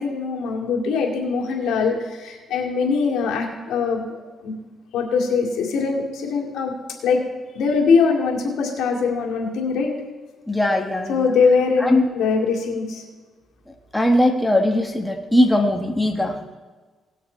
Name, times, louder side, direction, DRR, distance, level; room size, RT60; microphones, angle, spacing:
voice 1, 0.0-4.5 4.9-6.7 7.0-7.2 7.5-9.9 11.1-13.0, left 5 dB, 85° left, 0 dB, 2.1 m, -22 dB
voice 2, 10.5-11.3 11.8-12.1 13.9-16.4, left 1 dB, 5° left, 3 dB, 1.3 m, -20 dB
18.0 x 6.6 x 4.4 m, 1.3 s
cardioid pair, 90°, 0 cm